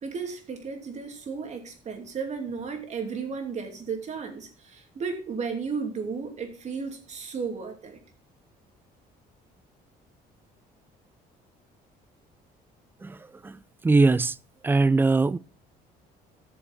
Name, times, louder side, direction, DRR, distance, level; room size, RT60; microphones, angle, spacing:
voice 1, 0.0-8.0, right 5 dB, 45° right, 2.8 m, -34 dB
voice 2, 13.0-14.4 14.6-15.4, right 3 dB, 10° right, 0.3 m, -22 dB
14.0 x 6.9 x 3.6 m
cardioid pair, 110°, 17 cm